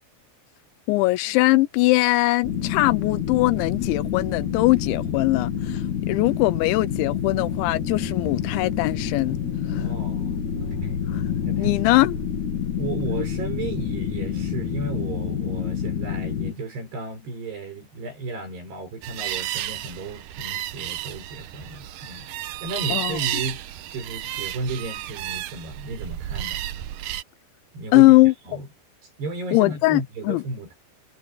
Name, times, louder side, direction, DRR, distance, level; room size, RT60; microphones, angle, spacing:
voice 1, 0.9-9.4 9.7-9.8 11.1-11.2 11.6-12.2 22.9-23.2 27.9-28.3 29.5-30.4, left 20 dB, 85° left, 3.0 m, -20 dB
sound 1, 2.4-16.5, left 8 dB, 50° left, 3.2 m, -28 dB
voice 2, 9.8-11.0 11.5-11.8 12.8-23.6 23.9-26.6 27.7-28.1 28.5-28.7 29.0-30.7, right 3 dB, 60° right, 8.3 m, -34 dB
sound 2, 19.0-27.2, right 13 dB, 85° right, 1.9 m, -32 dB
omnidirectional pair, 5.3 m